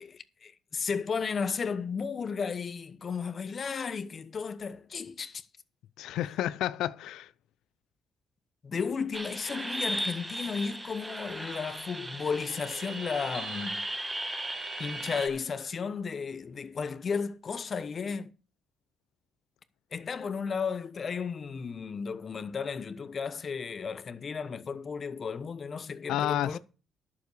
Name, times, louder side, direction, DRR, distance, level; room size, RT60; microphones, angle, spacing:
voice 1, 0.0-5.4 8.6-13.9 14.8-18.3 19.9-26.6, left 5 dB, 45° left, 1.0 m, -34 dB
voice 2, 6.0-7.3 26.1-26.6, left 12 dB, 85° left, 0.6 m, -30 dB
sound 1, 9.1-15.3, right 1 dB, 15° right, 1.6 m, -36 dB
11.0 x 7.3 x 6.6 m
cardioid pair, 90°, 0 cm